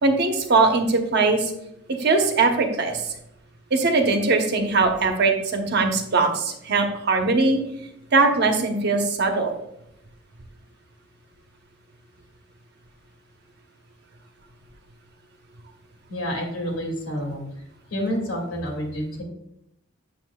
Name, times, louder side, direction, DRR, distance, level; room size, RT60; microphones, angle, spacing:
voice 1, 0.0-1.5 1.9-3.0 3.7-7.6 8.1-9.5, right 3 dB, 55° right, 4 dB, 1.0 m, -21 dB
voice 2, 16.1-17.4 17.9-19.2, equal, 85° left, 1 dB, 2.3 m, -28 dB
7.5 x 7.3 x 2.3 m, 0.80 s
head